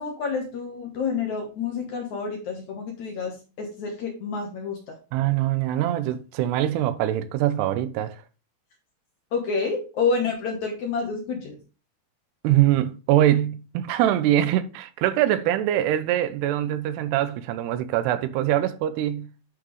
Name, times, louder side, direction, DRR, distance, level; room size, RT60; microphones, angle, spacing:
voice 1, 0.0-5.0 9.3-11.6, left 5 dB, 65° left, 2.0 m, -28 dB
voice 2, 5.1-8.2 12.4-19.3, right 12 dB, 85° right, 2.7 m, -23 dB
9.8 x 5.8 x 3.1 m
omnidirectional pair, 4.8 m